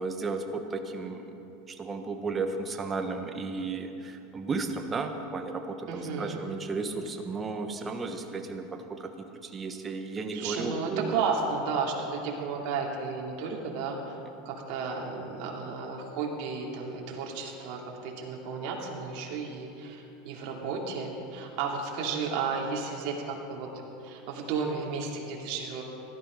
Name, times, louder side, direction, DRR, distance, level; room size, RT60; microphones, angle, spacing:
voice 1, 0.0-1.3 1.7-11.2, right 3 dB, 20° right, 5 dB, 1.2 m, -34 dB
voice 2, 5.9-6.4 10.3-14.0 14.4-23.7 24.0-25.8, right 5 dB, 55° right, -2 dB, 2.7 m, -33 dB
16.5 x 12.0 x 5.3 m, 2.9 s
supercardioid pair, 135°, 0 cm